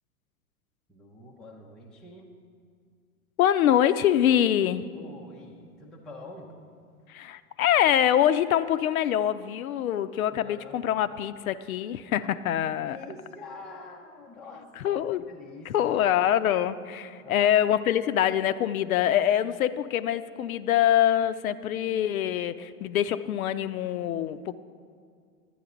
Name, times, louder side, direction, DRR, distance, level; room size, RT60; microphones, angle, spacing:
voice 1, 0.9-2.3 4.9-6.5 10.3-10.9 12.7-16.2 17.2-17.6, left 2 dB, ahead, -2 dB, 0.3 m, -46 dB
voice 2, 3.4-4.9 7.1-13.0 14.8-15.2 15.7-24.5, left 11 dB, 70° left, 13 dB, 0.5 m, -24 dB
11.0 x 9.2 x 3.8 m, 2.2 s
figure-of-eight pair, 100°, 44 cm